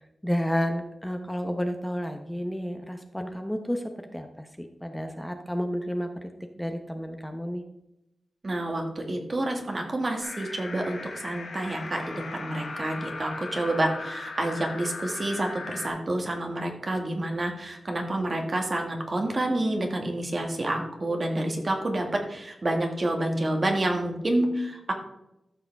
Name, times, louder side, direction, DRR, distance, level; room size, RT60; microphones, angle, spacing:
voice 1, 0.2-6.3 6.6-7.6, equal, 5° left, 5 dB, 1.0 m, -31 dB
voice 2, 8.4-24.9, right 1 dB, 45° right, 2 dB, 2.1 m, -28 dB
sound 1, 10.2-15.9, left 3 dB, 80° left, 3.4 m, -38 dB
13.5 x 5.8 x 3.6 m, 0.88 s
cardioid pair, 50°, 0 cm